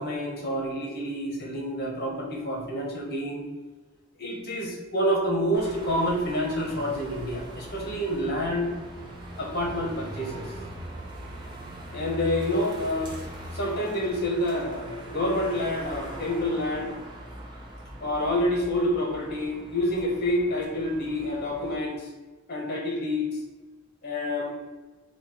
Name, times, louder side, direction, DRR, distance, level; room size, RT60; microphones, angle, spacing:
voice 1, 0.0-3.4 4.2-8.7 9.4-10.5 11.9-13.2 13.5-17.0 18.0-22.1 22.5-23.4 24.0-24.5, left 1 dB, 50° left, 0 dB, 1.1 m, -28 dB
sound 1, 5.5-21.8, right 1 dB, 25° right, 0.9 m, -41 dB
4.4 x 2.3 x 4.4 m, 1.2 s
head